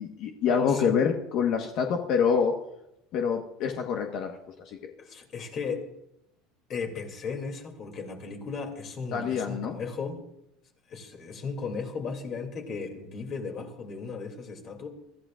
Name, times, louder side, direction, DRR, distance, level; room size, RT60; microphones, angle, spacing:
voice 1, 0.0-2.5 3.1-4.4 4.7-4.8 9.1-9.8, left 6 dB, 50° left, 3 dB, 1.3 m, -26 dB
voice 2, 0.6-1.0 5.0-5.8 6.7-10.2 10.9-14.9, left 5 dB, 35° left, 3 dB, 2.8 m, -36 dB
24.0 x 14.0 x 2.5 m, 0.82 s
cardioid pair, 160°, 0 cm